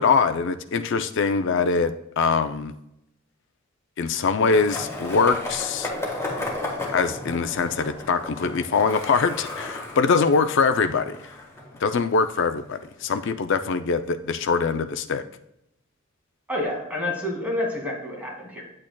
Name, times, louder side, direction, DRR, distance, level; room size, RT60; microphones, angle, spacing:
voice 1, 0.0-2.7 4.0-5.9 6.9-11.2 11.8-15.2, left 5 dB, 65° left, 9 dB, 0.5 m, -23 dB
Skateboard, 4.5-12.5, left 2 dB, 15° left, 1.5 m, -34 dB
voice 2, 16.5-18.6, left 1 dB, 10° right, -2 dB, 2.1 m, -28 dB
8.7 x 8.4 x 2.3 m, 0.81 s
head